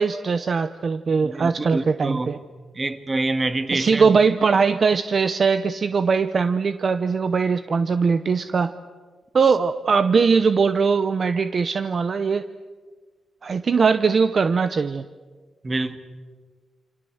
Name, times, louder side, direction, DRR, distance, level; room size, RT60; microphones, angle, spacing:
voice 1, 0.0-2.4 3.7-8.7 9.3-12.4 13.4-15.1, right 5 dB, 40° right, 12 dB, 0.8 m, -20 dB
voice 2, 1.2-2.3 2.7-4.1 15.6-16.0, right 2 dB, 20° right, 10 dB, 1.6 m, -26 dB
28.0 x 26.5 x 8.0 m, 1.4 s
wide cardioid pair, 165°, 0 cm